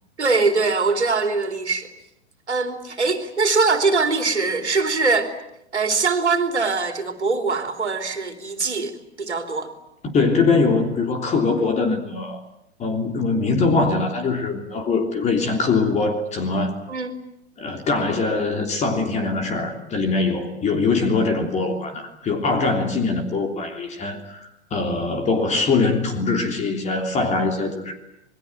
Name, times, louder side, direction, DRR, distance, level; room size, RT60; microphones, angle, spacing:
voice 1, 0.2-1.9 2.5-5.3 5.7-8.9 9.2-9.7 16.9-17.1, right 4 dB, 75° right, 6 dB, 3.3 m, -22 dB
voice 2, 10.0-12.4 12.8-16.8 17.6-28.0, left 3 dB, 20° left, 6 dB, 3.2 m, -22 dB
27.0 x 21.5 x 9.0 m, 0.80 s
figure-of-eight pair, 100°, 34 cm